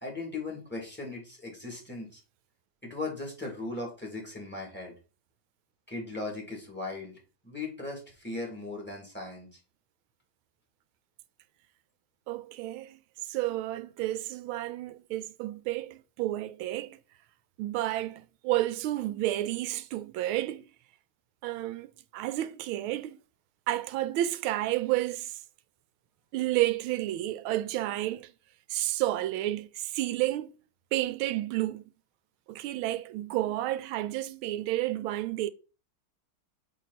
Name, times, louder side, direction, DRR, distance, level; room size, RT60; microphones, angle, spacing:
voice 1, 0.0-2.2 2.8-4.9 5.9-7.2 7.4-9.6, left 3 dB, 5° left, 2.4 m, -38 dB
voice 2, 12.3-13.0 13.3-17.0 17.6-20.6 21.4-23.2 23.7-25.4 26.3-28.3 28.7-30.5 30.9-31.8 32.5-35.5, right 15 dB, 80° right, 1.4 m, -31 dB
8.3 x 3.5 x 4.2 m
omnidirectional pair, 2.3 m